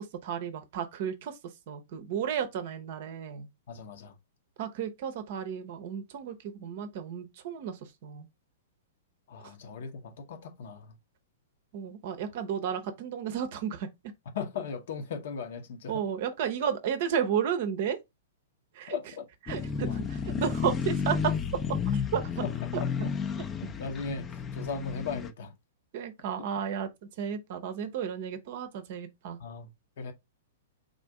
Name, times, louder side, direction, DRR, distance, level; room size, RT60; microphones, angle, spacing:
voice 1, 0.0-3.5 4.6-8.3 11.7-13.9 15.9-18.0 18.7-19.0 19.5-21.3 21.9-22.5 22.7-23.1 23.6-23.7 25.9-26.9 27.2-29.4, right 8 dB, 50° right, 0.6 m, -33 dB
voice 2, 3.7-4.1 9.3-11.0 14.3-16.0 18.9-20.0 22.4-23.1 23.6-25.5 29.4-29.7 30.0-30.1, left 5 dB, 55° left, 0.8 m, -38 dB
sound 1, 19.5-25.3, left 6 dB, 20° left, 0.5 m, -32 dB
3.7 x 2.6 x 3.4 m
figure-of-eight pair, 105°, 0 cm